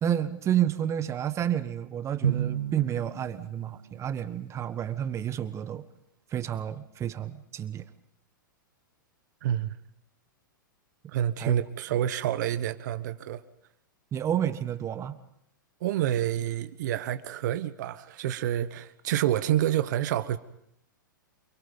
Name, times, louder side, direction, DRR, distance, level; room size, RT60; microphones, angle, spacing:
voice 1, 0.0-5.8 6.3-7.8 11.4-11.5 14.1-15.2, right 10 dB, 25° right, 1.4 m, -30 dB
Drum, 2.2-4.4, right 9 dB, 85° right, 1.6 m, -32 dB
voice 2, 9.4-9.8 11.1-13.4 15.8-20.4, right 11 dB, 60° right, 1.3 m, -28 dB
28.5 x 22.0 x 5.4 m
hypercardioid pair, 110°, 11 cm